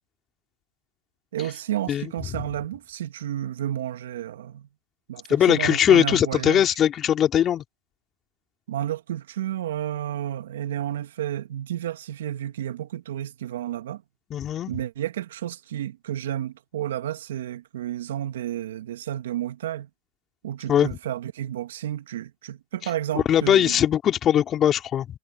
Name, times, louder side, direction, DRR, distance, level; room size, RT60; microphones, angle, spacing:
voice 1, 1.3-4.7 5.1-6.7 8.7-14.0 14.7-19.9 20.4-23.8, right 11 dB, 80° right, 2.2 m, -31 dB
voice 2, 5.3-7.6 14.3-14.7 20.7-20.9 22.8-22.9 23.1-25.1, left 10 dB, 35° left, 3.3 m, -20 dB
hypercardioid pair, 115°, 0 cm